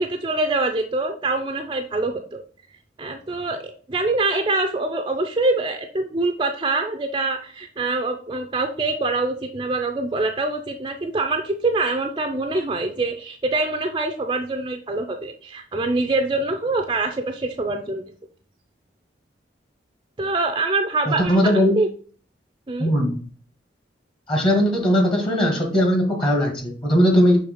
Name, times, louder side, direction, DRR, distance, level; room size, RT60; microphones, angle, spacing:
voice 1, 0.0-2.4 3.0-18.0 20.2-21.9 22.7-22.9, right 2 dB, 25° right, 5 dB, 0.5 m, -24 dB
voice 2, 21.1-21.8 22.8-23.2 24.3-27.4, equal, 30° left, 1 dB, 1.4 m, -19 dB
6.3 x 3.3 x 5.0 m, 0.43 s
head